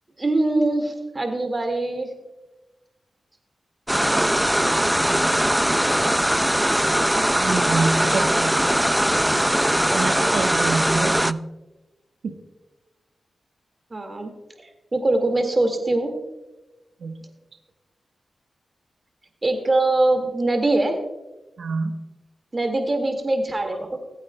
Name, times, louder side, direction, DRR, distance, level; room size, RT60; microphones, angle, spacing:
voice 1, 0.2-2.1 8.4-8.6 13.9-14.3 14.6-16.1 19.4-21.0 22.5-24.0, right 2 dB, 35° right, 4 dB, 1.9 m, -23 dB
sound 1, 3.9-11.3, equal, 5° right, 0.4 m, -20 dB
voice 2, 7.4-8.5 9.9-11.4 12.2-12.3 17.0-17.1 21.6-22.0, right 4 dB, 80° right, 4 dB, 1.0 m, -26 dB
20.0 x 8.6 x 2.2 m, 1.1 s
cardioid pair, 55°, 0 cm